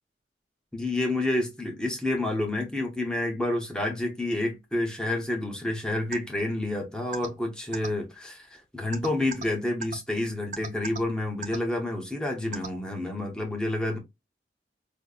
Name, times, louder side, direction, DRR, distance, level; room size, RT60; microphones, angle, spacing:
voice 1, 0.7-14.0, left 1 dB, 5° left, 0.7 m, -29 dB
sound 1, 6.1-6.2 7.1-7.3 7.7-7.9 8.9-9.4 9.8-9.9 10.5-11.0 11.4-11.6 12.5-12.7, right 5 dB, 45° right, 0.7 m, -34 dB
5.1 x 2.1 x 2.3 m
head